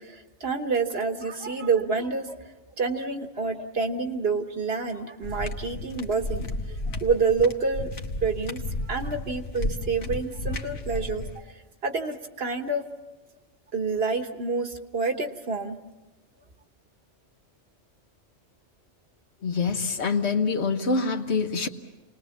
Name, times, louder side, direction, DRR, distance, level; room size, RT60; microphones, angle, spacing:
voice 1, 0.0-2.4 2.8-7.9 8.2-11.3 11.8-12.8 13.7-15.8, right 4 dB, 55° right, 5 dB, 1.5 m, -28 dB
sound 1, 5.2-11.4, left 2 dB, 85° left, 1.6 m, -33 dB
voice 2, 19.4-21.7, left 4 dB, 65° left, 6 dB, 1.4 m, -25 dB
28.5 x 20.0 x 7.1 m, 1.1 s
omnidirectional pair, 1.2 m